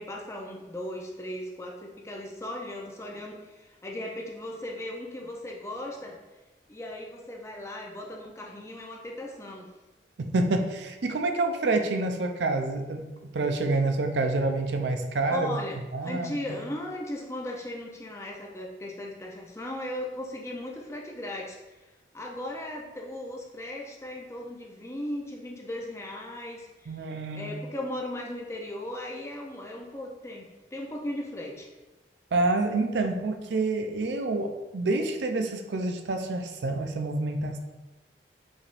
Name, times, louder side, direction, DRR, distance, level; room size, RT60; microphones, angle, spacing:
voice 1, 0.0-6.2 6.7-9.7 15.3-21.8 22.1-27.0 27.3-31.7, left 1 dB, 15° left, -1 dB, 0.5 m, -37 dB
voice 2, 10.3-13.0 13.3-15.6 15.9-16.6 26.9-27.6 32.3-37.6, right 2 dB, 80° right, 5 dB, 0.5 m, -27 dB
5.1 x 3.4 x 2.5 m, 1.1 s
head